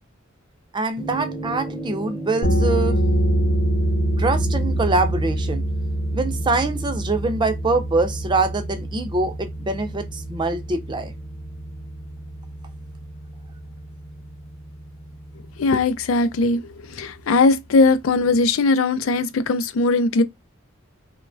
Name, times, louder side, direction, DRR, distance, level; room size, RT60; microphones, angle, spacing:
voice 1, 0.7-3.0 4.2-5.6 6.1-11.1, right 3 dB, 25° right, 0.4 m, -24 dB
sound 1, 1.0-15.5, right 1 dB, 25° left, 0.6 m, -38 dB
sound 2, 2.4-13.8, right 1 dB, 65° left, 0.8 m, -25 dB
voice 2, 15.6-20.2, left 3 dB, 85° left, 0.4 m, -19 dB
3.0 x 2.2 x 2.4 m
head